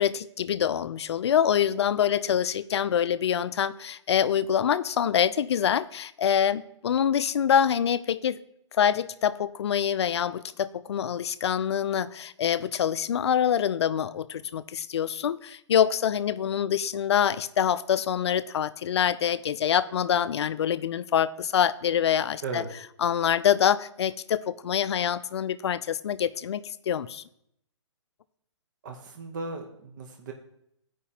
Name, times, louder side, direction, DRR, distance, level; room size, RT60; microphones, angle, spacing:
voice 1, 0.0-8.4 8.8-22.6 23.0-27.2, left 9 dB, 60° left, 15 dB, 0.4 m, -25 dB
voice 2, 28.8-30.3, right 3 dB, 40° right, 3 dB, 0.8 m, -36 dB
14.5 x 5.0 x 2.8 m, 0.74 s
hypercardioid pair, 165°, 16 cm